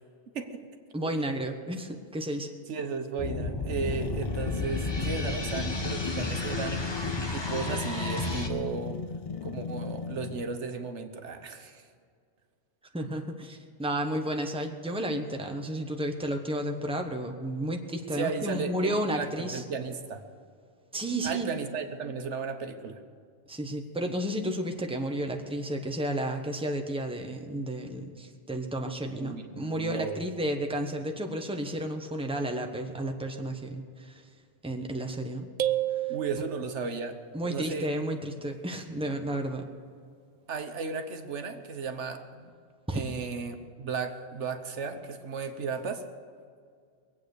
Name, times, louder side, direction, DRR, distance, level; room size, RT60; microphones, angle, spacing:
voice 1, 0.3-0.7 1.0-1.1 2.7-6.9 7.3-9.0 9.4-11.8 18.1-20.2 21.2-23.0 29.1-30.2 36.1-37.2 37.5-37.9 40.5-42.5 42.9-46.0, right 5 dB, 80° right, 7 dB, 1.3 m, -35 dB
voice 2, 0.9-2.5 12.9-19.6 20.9-21.6 23.5-34.2 34.6-35.5 35.9-36.1 37.3-39.6 42.9-43.0, right 1 dB, 5° right, 3 dB, 1.1 m, -32 dB
sound 1, 3.2-8.5, left 2 dB, 25° left, 1.2 m, -32 dB
sound 2, 3.9-10.6, left 5 dB, 50° left, 0.4 m, -37 dB
sound 3, 35.6-37.1, right 13 dB, 55° right, 0.6 m, -30 dB
22.0 x 8.5 x 6.8 m, 2.1 s
omnidirectional pair, 1.2 m